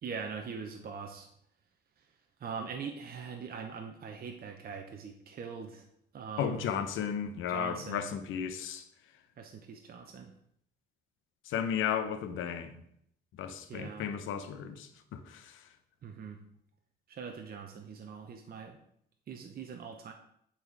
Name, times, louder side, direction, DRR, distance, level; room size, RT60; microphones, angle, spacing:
voice 1, 0.0-1.3 2.4-5.8 6.1-6.8 7.5-8.1 9.4-10.3 13.7-14.1 16.0-16.4 17.1-18.8 19.3-20.1, right 6 dB, 50° right, 0.8 m, -42 dB
voice 2, 6.4-8.8 11.5-12.7 13.3-15.6, left 8 dB, 85° left, 0.9 m, -34 dB
9.0 x 4.3 x 4.6 m
cardioid pair, 90°, 20 cm